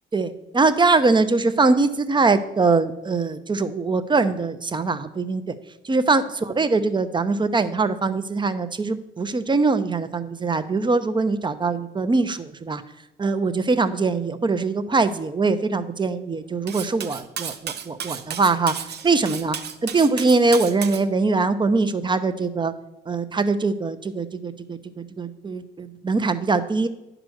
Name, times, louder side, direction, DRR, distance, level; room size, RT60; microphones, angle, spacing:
voice 1, 0.1-5.5 5.8-12.8 13.2-18.7 19.0-19.6 19.8-22.7 23.1-26.9, right 3 dB, 25° right, 11 dB, 0.7 m, -22 dB
Cutlery silverware, 16.7-21.0, right 8 dB, 55° right, 0.8 m, -33 dB
10.5 x 5.0 x 6.3 m, 0.91 s
cardioid pair, 90°, 20 cm